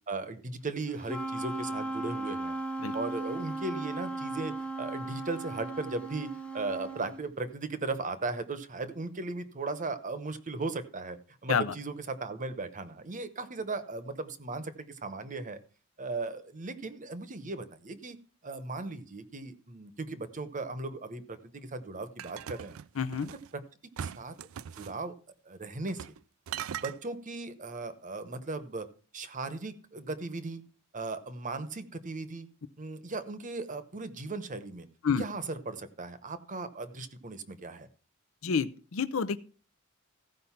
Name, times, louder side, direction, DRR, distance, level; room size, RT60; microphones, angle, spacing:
voice 1, 0.1-2.6 2.9-15.6 16.0-18.2 18.4-22.8 23.2-23.4 24.0-24.3 24.8-25.1 25.4-26.0 26.8-28.9 29.1-30.6 30.9-32.5 32.8-34.9 35.2-37.9, right 3 dB, 40° right, 12 dB, 0.9 m, -37 dB
Wind instrument woodwind instrument, 1.0-7.2, right 2 dB, 5° left, 0.8 m, -36 dB
sound 1, 22.2-23.5 24.0-25.0 25.9-26.2 26.5-27.0, right 9 dB, 75° right, 0.4 m, -40 dB
voice 2, 23.0-23.3 35.0-35.2 38.4-39.4, left 6 dB, 70° left, 14 dB, 0.6 m, -29 dB
15.0 x 5.2 x 5.7 m, 0.39 s
head